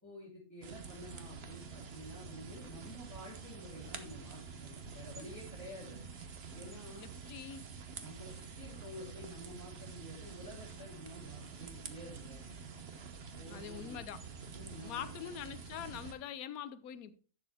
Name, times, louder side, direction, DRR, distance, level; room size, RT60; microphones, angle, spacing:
voice 1, 0.0-6.0 6.5-7.1 8.0-12.4 13.4-14.0 14.5-15.1, equal, 10° left, 3.4 m, -50 dB
sound 1, 0.6-16.1, right 5 dB, 50° right, 1.1 m, -48 dB
voice 2, 7.0-7.6 13.5-14.2 14.8-17.2, left 9 dB, 75° left, 1.2 m, -44 dB
11.0 x 6.9 x 3.5 m
omnidirectional pair, 1.6 m